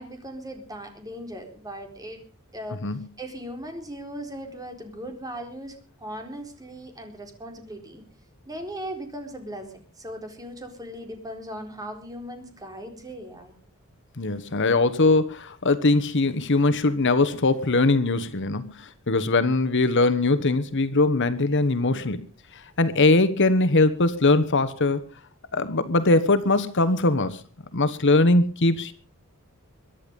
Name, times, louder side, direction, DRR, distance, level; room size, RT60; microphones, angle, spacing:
voice 1, 0.0-2.2 2.5-2.8 3.2-8.0 8.5-13.5, equal, 15° right, 4 dB, 4.1 m, -38 dB
voice 2, 14.2-22.2 22.8-25.0 25.5-27.4 27.7-28.9, left 2 dB, 55° left, 12 dB, 1.3 m, -21 dB
23.0 x 10.5 x 5.4 m, 0.38 s
head